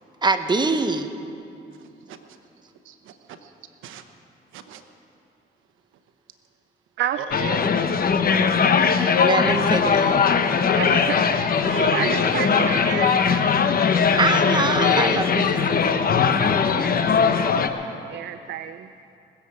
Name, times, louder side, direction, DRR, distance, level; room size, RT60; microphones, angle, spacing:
voice 1, 0.2-1.1 9.2-10.2 13.9-16.1, right 3 dB, 20° right, 7 dB, 1.0 m, -24 dB
voice 2, 1.8-2.4 2.8-3.5 3.8-4.0 4.5-4.8 7.1-8.0 8.5-8.6 11.6-12.8 17.0-17.1, right 7 dB, 85° right, 8 dB, 1.0 m, -35 dB
voice 3, 7.0-7.9 10.8-11.3 11.9-13.6 18.1-18.9, right 10 dB, 65° right, 11 dB, 0.5 m, -30 dB
sound 1, 7.3-17.7, left 6 dB, 50° left, 0.9 m, -20 dB
20.5 x 7.4 x 7.9 m, 2.7 s
cardioid pair, 90°, 20 cm